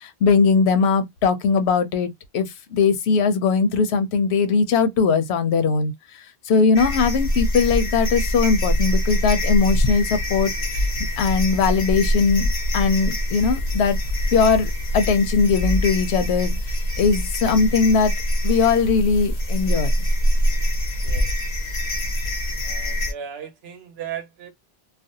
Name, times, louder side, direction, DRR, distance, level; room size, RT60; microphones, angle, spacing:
voice 1, 0.0-5.9 6.5-10.9 11.2-14.0 14.3-16.6 17.0-18.1 18.4-19.9, left 5 dB, 85° left, 0.9 m, -20 dB
sound 1, 6.7-23.1, equal, 50° left, 0.5 m, -24 dB
voice 2, 21.0-21.3 22.6-24.5, right 9 dB, 75° right, 0.9 m, -36 dB
2.5 x 2.1 x 2.7 m
omnidirectional pair, 1.1 m